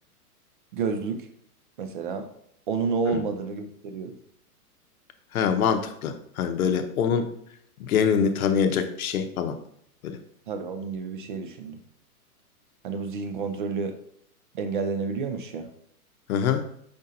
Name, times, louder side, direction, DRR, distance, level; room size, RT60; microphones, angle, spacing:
voice 1, 0.7-1.3 1.8-2.3 2.7-4.2 6.7-6.9 10.5-11.8 12.8-14.0 14.5-15.7, right 5 dB, 35° right, 7 dB, 0.4 m, -30 dB
voice 2, 5.3-7.3 7.8-9.5 10.0-10.2 16.3-16.6, left 7 dB, 65° left, 8 dB, 0.7 m, -24 dB
5.1 x 2.6 x 4.1 m, 0.69 s
hypercardioid pair, 145°, 46 cm